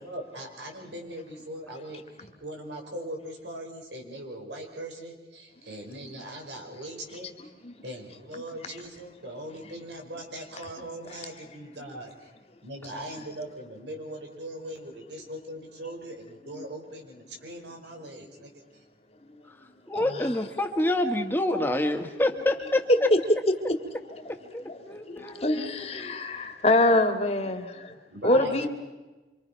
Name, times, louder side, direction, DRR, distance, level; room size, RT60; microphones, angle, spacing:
voice 1, 0.0-7.5 7.8-12.1 12.6-18.6 28.1-28.7, right 1 dB, 90° right, 2 dB, 5.4 m, -40 dB
voice 2, 19.9-23.1 24.5-26.1 28.3-28.5, left 1 dB, 10° left, 5 dB, 1.7 m, -27 dB
voice 3, 24.6-27.9 28.2-28.7, left 1 dB, 35° left, 6 dB, 2.0 m, -25 dB
27.0 x 25.5 x 5.8 m, 1.2 s
head